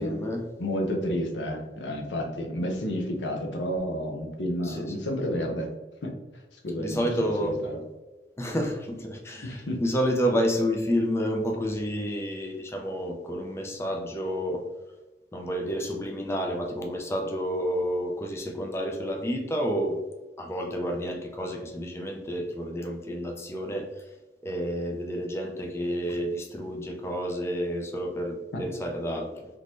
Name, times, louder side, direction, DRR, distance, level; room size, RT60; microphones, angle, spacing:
voice 1, 0.0-0.5 4.6-4.9 6.8-7.6 8.4-14.6 15.3-20.0 20.4-24.0 24.4-29.5, equal, 15° left, 1 dB, 0.4 m, -30 dB
voice 2, 0.6-5.7 6.0-6.1 6.5-7.8 9.4-9.8 28.5-28.6, equal, 85° left, 2 dB, 0.7 m, -31 dB
3.7 x 3.0 x 2.5 m, 1.2 s
head